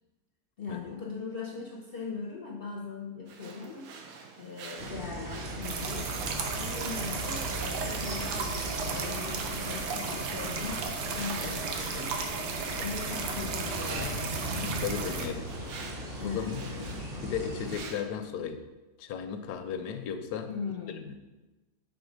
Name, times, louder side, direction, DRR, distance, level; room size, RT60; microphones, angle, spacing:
voice 1, 0.6-12.5 12.8-14.3 16.2-17.0 20.5-21.2, left 5 dB, 55° left, -2 dB, 0.6 m, -40 dB
sound 1, 3.3-18.0, right 5 dB, 65° right, 1.0 m, -47 dB
sound 2, 4.8-17.8, equal, 40° right, 1.2 m, -38 dB
sound 3, 5.6-15.3, right 5 dB, 85° right, 1.3 m, -35 dB
voice 2, 14.6-15.5 16.2-16.7 17.2-18.6 19.0-20.5, left 7 dB, 85° left, 8 dB, 1.2 m, -35 dB
6.2 x 3.7 x 5.0 m, 1.1 s
omnidirectional pair, 1.7 m